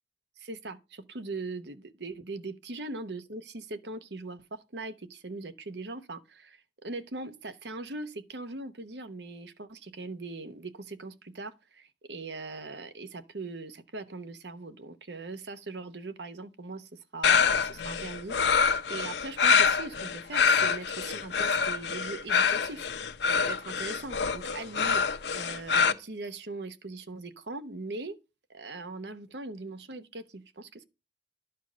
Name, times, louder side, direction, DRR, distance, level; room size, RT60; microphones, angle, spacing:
voice 1, 0.4-22.9 23.5-25.0 25.3-28.2 28.5-30.8, right 3 dB, 75° right, 1.0 m, -40 dB
sound 1, 17.2-25.9, left 6 dB, 75° left, 0.7 m, -26 dB
12.0 x 4.5 x 6.2 m
head